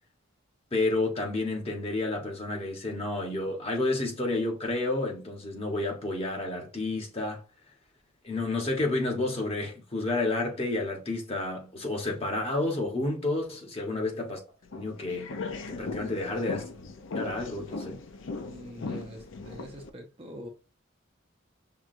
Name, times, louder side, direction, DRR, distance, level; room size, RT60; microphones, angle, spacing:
voice 1, 0.7-7.4 8.2-14.4 14.8-15.3 15.7-16.9 17.1-18.0, left 2 dB, 30° left, 1.1 m, -30 dB
voice 2, 13.9-14.2 16.2-16.5 18.5-20.5, equal, 30° right, 0.6 m, -44 dB
sound 1, 14.6-19.9, left 3 dB, 70° left, 0.5 m, -38 dB
5.8 x 2.3 x 2.5 m
head